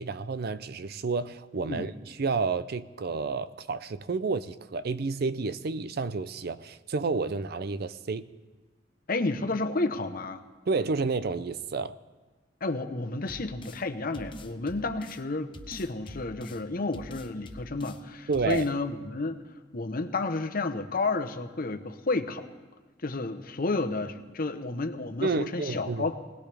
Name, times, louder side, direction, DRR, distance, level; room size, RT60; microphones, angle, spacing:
voice 1, 0.0-8.3 10.7-12.0 18.3-18.7 25.2-26.1, right 4 dB, 60° right, 14 dB, 0.5 m, -30 dB
voice 2, 9.1-10.4 12.6-19.4 19.7-22.5 23.0-26.1, left 3 dB, 50° left, 7 dB, 1.0 m, -31 dB
sound 1, 13.3-13.8 14.1-15.2 15.5-16.6 16.9-18.0 18.3-18.7, left 1 dB, 25° left, 0.8 m, -44 dB
20.0 x 19.0 x 3.4 m, 1.3 s
head